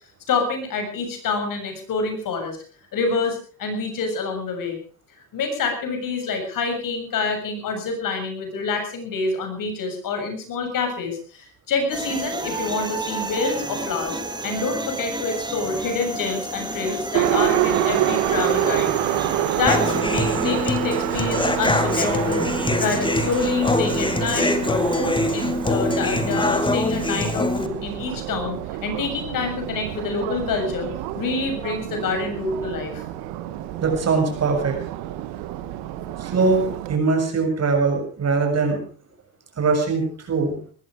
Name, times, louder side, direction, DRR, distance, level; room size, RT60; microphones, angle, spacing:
voice 1, 0.3-2.6 2.9-4.8 5.3-18.9 19.5-22.4 22.7-30.9 31.1-33.0, left 4 dB, 60° left, 5 dB, 7.3 m, -27 dB
sound 1, 11.9-20.0, right 2 dB, 10° right, 3.5 m, -31 dB
Subway metro underground, 17.1-37.0, right 12 dB, 90° right, 2.0 m, -27 dB
Human voice / Acoustic guitar, 19.7-27.7, left 2 dB, 15° left, 2.3 m, -23 dB
voice 2, 33.8-34.8 36.2-38.8 39.6-40.6, right 4 dB, 40° right, 4 dB, 7.1 m, -21 dB
19.5 x 14.5 x 5.0 m, 0.41 s
cardioid pair, 100°, 37 cm